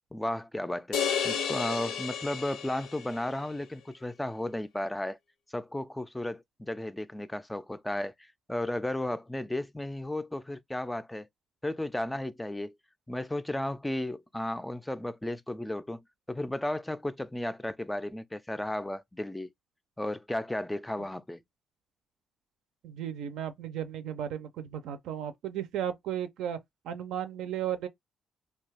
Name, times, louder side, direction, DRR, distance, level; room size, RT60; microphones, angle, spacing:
voice 1, 0.1-1.0 1.2-5.2 5.5-11.3 11.6-12.7 13.1-19.5 20.0-21.4, left 1 dB, 10° left, 0.3 m, -34 dB
sound 1, 0.9-3.3, left 7 dB, 90° left, 0.7 m, -32 dB
voice 2, 22.8-26.6 26.8-27.9, right 10 dB, 85° right, 0.5 m, -35 dB
2.6 x 2.3 x 3.3 m
cardioid pair, 90°, 0 cm